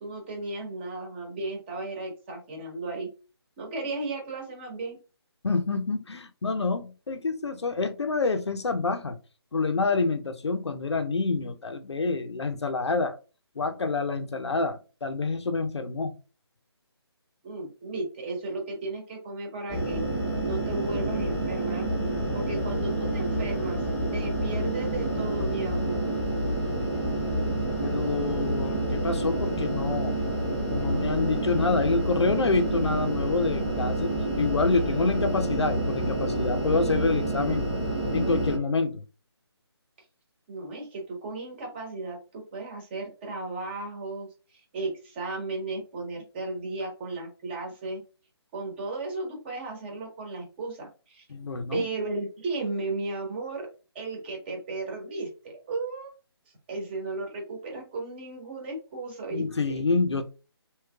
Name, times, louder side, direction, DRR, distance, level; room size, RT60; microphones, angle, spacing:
voice 1, 0.0-3.1 3.6-5.0 17.4-20.0 20.4-21.9 22.3-23.8 24.1-26.1 40.5-48.0 48.5-51.3 51.7-53.7 53.9-56.1 56.7-59.8, right 2 dB, 25° right, 1.1 m, -35 dB
voice 2, 5.4-9.2 9.5-13.2 13.6-16.1 27.8-30.2 30.7-37.7 38.1-39.0 51.3-51.8 59.3-60.2, left 3 dB, 85° left, 0.5 m, -27 dB
sound 1, 19.7-38.6, right 1 dB, ahead, 0.9 m, -28 dB
3.1 x 2.9 x 2.3 m
figure-of-eight pair, 155°, 14 cm